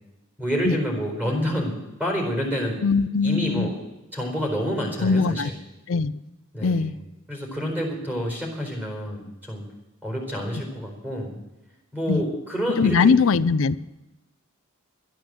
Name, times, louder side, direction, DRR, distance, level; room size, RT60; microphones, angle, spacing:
voice 1, 0.4-2.8 3.2-3.8 4.1-5.5 6.5-6.9 7.3-9.6 10.0-11.4 11.9-13.1, equal, 10° right, 0 dB, 4.3 m, -28 dB
voice 2, 2.8-3.7 5.0-5.5 5.9-6.1 6.6-6.9 12.1-12.2 12.8-13.8, left 5 dB, 65° left, 14 dB, 0.5 m, -21 dB
12.5 x 10.5 x 7.6 m, 1.0 s
head